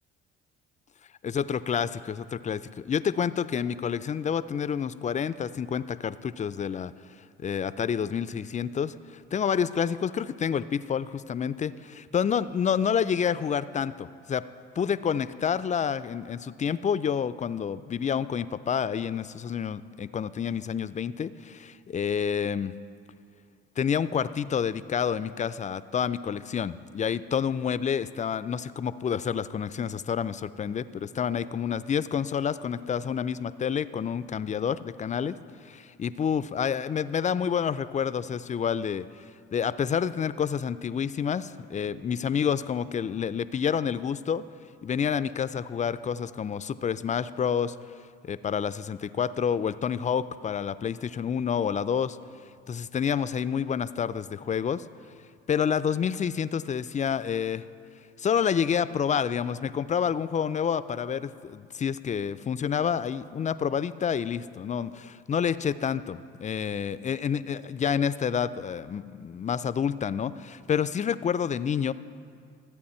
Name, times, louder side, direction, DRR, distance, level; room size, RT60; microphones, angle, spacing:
voice 1, 1.2-6.9 7.4-8.9 9.3-14.4 14.8-22.7 23.8-35.4 35.6-39.1 39.5-44.4 44.8-47.7 48.2-52.2 52.7-54.8 55.5-57.6 58.2-71.9, left 7 dB, 25° left, 15 dB, 0.4 m, -28 dB
13.5 x 8.5 x 4.3 m, 2.3 s
hypercardioid pair, 60°, 30 cm